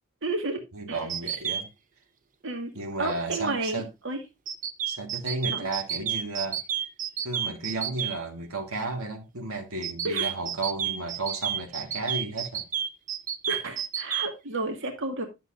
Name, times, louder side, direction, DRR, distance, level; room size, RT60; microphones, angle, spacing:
voice 1, 0.2-0.6 0.9-1.1 2.4-2.7 3.0-4.2 5.5-5.7 10.0-10.3 13.5-15.3, right 2 dB, 60° right, 1.7 m, -31 dB
voice 2, 0.7-1.7 2.7-3.8 4.9-6.6 7.2-12.6, right 2 dB, 85° right, 1.8 m, -33 dB
sound 1, 1.1-1.6 4.5-8.1 9.8-14.3, right 9 dB, 40° right, 0.7 m, -30 dB
11.0 x 6.8 x 2.5 m
head